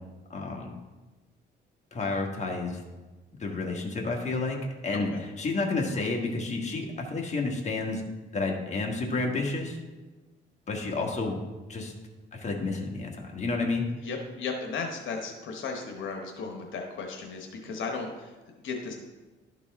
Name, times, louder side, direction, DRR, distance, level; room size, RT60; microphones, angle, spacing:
voice 1, 0.3-0.7 1.9-2.8 3.4-4.6 4.8-8.0 8.3-9.8 10.7-11.4 11.7-11.9 12.3-13.9, left 3 dB, 35° left, 0 dB, 1.4 m, -30 dB
voice 2, 14.0-18.9, left 4 dB, 80° left, 2 dB, 1.0 m, -35 dB
12.0 x 4.1 x 3.5 m, 1.2 s
cardioid pair, 90°, 20 cm